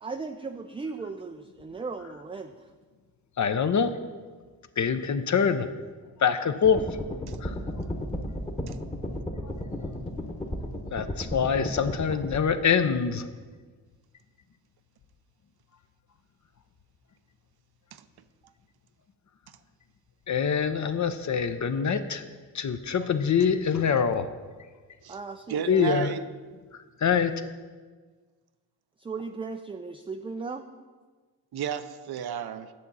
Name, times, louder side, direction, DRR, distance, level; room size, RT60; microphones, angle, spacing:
voice 1, 0.0-2.5 25.1-25.9 29.0-30.6, right 4 dB, 15° right, 6 dB, 0.3 m, -37 dB
voice 2, 3.4-3.9 4.8-5.7 6.2-6.8 7.4-7.5 10.9-13.2 20.3-22.2 22.5-24.3 25.7-26.1 27.0-27.3, left 6 dB, 40° left, 10 dB, 0.7 m, -24 dB
sound 1, 6.6-12.4, left 1 dB, 15° left, 1.1 m, -34 dB
voice 3, 25.5-26.2 31.5-32.7, right 8 dB, 55° right, 11 dB, 0.6 m, -33 dB
8.5 x 6.3 x 4.0 m, 1.4 s
supercardioid pair, 45°, 47 cm